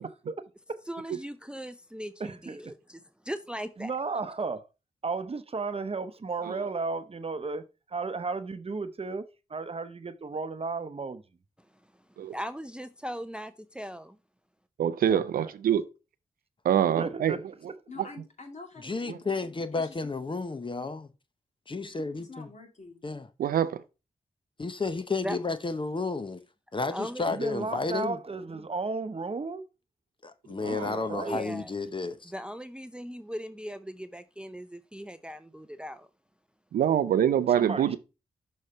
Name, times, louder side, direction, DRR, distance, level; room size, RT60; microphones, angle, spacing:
voice 1, 0.0-0.8 2.2-2.6 3.8-4.7 5.0-11.2 15.1-15.5 16.9-17.4 27.3-29.6 30.7-31.6 37.5-38.0, right 4 dB, 40° right, 0.8 m, -34 dB
voice 2, 0.9-3.9 12.3-14.2 25.2-25.4 26.9-27.3 31.1-31.7 32.2-36.1, equal, 5° right, 0.5 m, -39 dB
voice 3, 14.8-15.8 16.6-17.3 19.1-19.2 23.4-23.8 30.6-31.1 36.7-38.0, right 9 dB, 80° right, 0.5 m, -25 dB
voice 4, 17.9-19.2 19.5-20.0 22.3-23.0, left 3 dB, 50° left, 2.3 m, -46 dB
voice 5, 18.8-21.1 21.7-22.5 23.0-23.3 24.6-26.4 26.7-28.2 30.2-32.3, left 3 dB, 35° left, 0.8 m, -32 dB
6.5 x 3.2 x 5.3 m
supercardioid pair, 40°, 15 cm